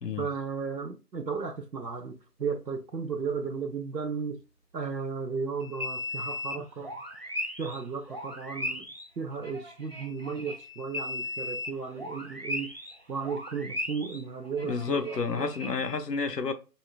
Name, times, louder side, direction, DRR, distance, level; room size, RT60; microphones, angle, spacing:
voice 1, 0.2-4.4 4.7-6.9 7.6-8.9 9.2-12.7 13.1-15.5, right 5 dB, 90° right, 0.8 m, -34 dB
sound 1, 5.6-16.0, left 2 dB, 40° left, 0.5 m, -37 dB
voice 2, 14.6-16.5, left 4 dB, 75° left, 0.8 m, -30 dB
5.5 x 2.4 x 2.2 m
figure-of-eight pair, 160°, 49 cm